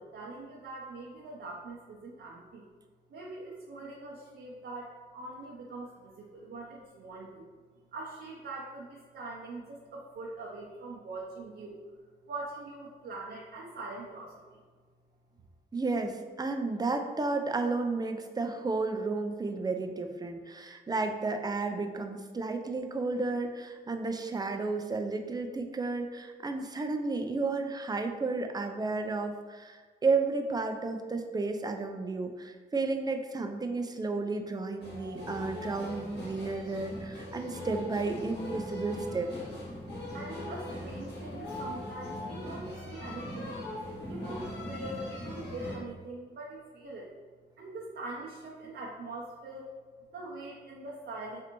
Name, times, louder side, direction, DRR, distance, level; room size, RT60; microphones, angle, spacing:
voice 1, 0.0-2.6 3.1-7.5 7.9-11.8 12.3-14.6 40.1-43.8 44.1-47.1 47.6-49.7 50.1-51.4, right 2 dB, 70° right, -4 dB, 0.6 m, -43 dB
voice 2, 15.7-39.3, right 3 dB, 20° right, 6 dB, 0.4 m, -32 dB
sound 1, 34.8-45.8, left 1 dB, 70° left, 1.3 m, -40 dB
3.3 x 2.6 x 2.9 m, 1.5 s
cardioid pair, 60°, 18 cm